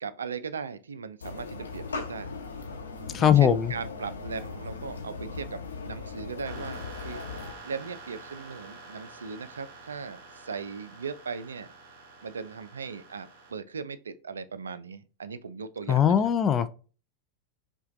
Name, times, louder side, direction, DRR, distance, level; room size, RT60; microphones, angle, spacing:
voice 1, 0.0-2.3 3.2-11.7 12.2-16.2, right 5 dB, 70° right, 0.4 m, -38 dB
sound 1, 1.2-7.5, left 4 dB, 75° left, 0.8 m, -39 dB
voice 2, 3.1-3.7 15.9-16.7, left 9 dB, 25° left, 0.3 m, -21 dB
sound 2, 6.4-13.5, right 3 dB, 50° right, 1.0 m, -47 dB
5.5 x 2.3 x 2.5 m
figure-of-eight pair, 90°, 0 cm